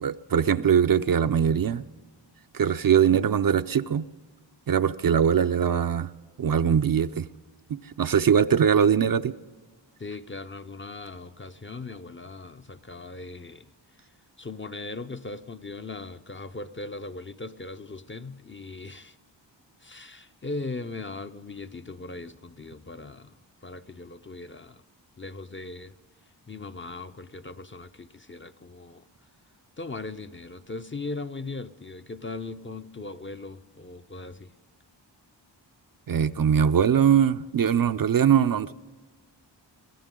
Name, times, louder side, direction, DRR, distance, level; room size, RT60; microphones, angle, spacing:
voice 1, 0.0-1.8 2.5-4.1 4.7-6.1 6.4-7.3 7.7-9.3 36.1-38.7, right 8 dB, 50° right, 0.5 m, -22 dB
voice 2, 10.0-13.7 14.4-19.2 19.8-23.4 23.6-24.8 25.2-25.9 26.5-29.1 29.8-34.5, left 3 dB, 25° left, 0.5 m, -39 dB
23.0 x 15.5 x 3.7 m
wide cardioid pair, 75°, 46 cm